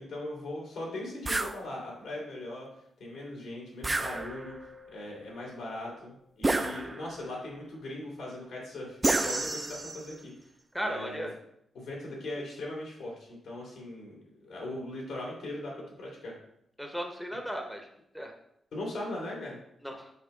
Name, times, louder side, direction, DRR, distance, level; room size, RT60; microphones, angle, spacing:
voice 1, 0.0-2.7 3.0-4.6 4.9-10.3 10.8-11.3 11.7-16.3 18.7-19.6, left 1 dB, 85° left, -3 dB, 2.8 m, -39 dB
sound 1, 1.3-1.6 3.8-4.7 6.4-7.2 9.0-10.1, right 2 dB, 20° right, 0.4 m, -30 dB
sound 2, 4.1-6.4, left 2 dB, 75° right, 1.6 m, -52 dB
voice 2, 10.7-11.4 16.8-17.9 18.1-18.3 19.8-20.1, equal, ahead, 3 dB, 0.7 m, -36 dB
5.7 x 5.3 x 3.8 m, 0.76 s
wide cardioid pair, 120°, 0 cm